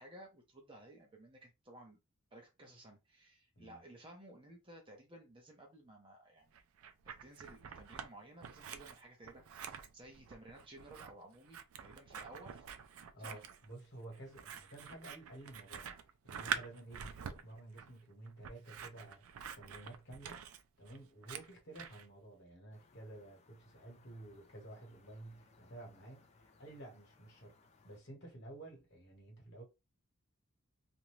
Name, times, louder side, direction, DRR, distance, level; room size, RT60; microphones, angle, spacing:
voice 1, 0.0-2.0 2.3-6.5 7.0-12.7 13.2-13.5, right 1 dB, 25° right, 0.7 m, -56 dB
Scissors, 6.5-8.1 8.4-22.0, right 7 dB, 75° right, 0.4 m, -46 dB
voice 2, 13.1-16.0 16.2-19.2 19.6-20.4 20.8-27.6 27.8-29.6, right 2 dB, 55° left, 1.3 m, -52 dB
sound 1, 22.7-28.0, left 3 dB, 30° left, 0.3 m, -66 dB
2.6 x 2.2 x 3.0 m
head